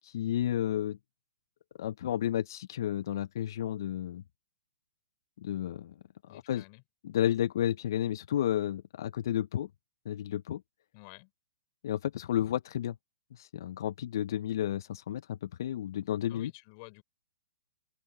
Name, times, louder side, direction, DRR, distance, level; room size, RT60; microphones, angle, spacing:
voice 1, 0.1-1.0 1.8-4.2 5.4-5.9 6.3-6.6 7.0-9.7 10.1-10.6 11.8-13.0 13.3-16.5, left 11 dB, 60° left, 0.7 m, -32 dB
voice 2, 6.3-6.8 10.9-11.3 16.3-17.0, left 30 dB, 40° left, 4.3 m, -51 dB
open air
hypercardioid pair, 140°, 2 cm